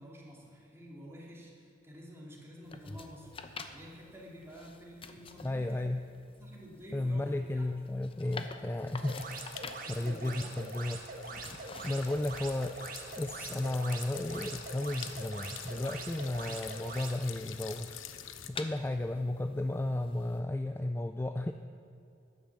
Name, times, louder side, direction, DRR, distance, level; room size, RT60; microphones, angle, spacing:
voice 1, 0.0-5.9 6.4-7.6 9.8-10.4, equal, 15° right, -4 dB, 2.8 m, -50 dB
sound 1, 2.6-20.4, left 4 dB, 30° left, 0.8 m, -50 dB
voice 2, 5.4-6.0 6.9-9.3 9.9-11.0 11.8-12.8 13.2-18.0 18.5-21.5, left 1 dB, 10° left, 8 dB, 0.3 m, -33 dB
sound 2, 9.0-17.2, right 3 dB, 45° right, 1.4 m, -44 dB
sound 3, 9.1-18.5, left 9 dB, 90° left, 0.8 m, -48 dB
12.5 x 10.5 x 7.3 m, 2.7 s
head